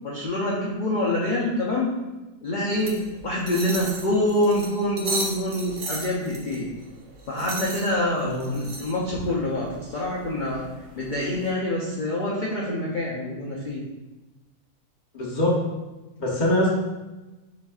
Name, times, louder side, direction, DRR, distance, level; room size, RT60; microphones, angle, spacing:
voice 1, 0.0-1.9 2.4-6.7 7.3-10.7 10.9-13.8, left 1 dB, 60° left, -4 dB, 0.5 m, -26 dB
sound 1, 2.7-11.5, right 3 dB, 65° right, 0.5 m, -36 dB
voice 2, 15.1-15.6 16.2-16.7, left 1 dB, 35° left, -4 dB, 0.8 m, -23 dB
6.9 x 3.1 x 2.4 m, 1.1 s
omnidirectional pair, 1.7 m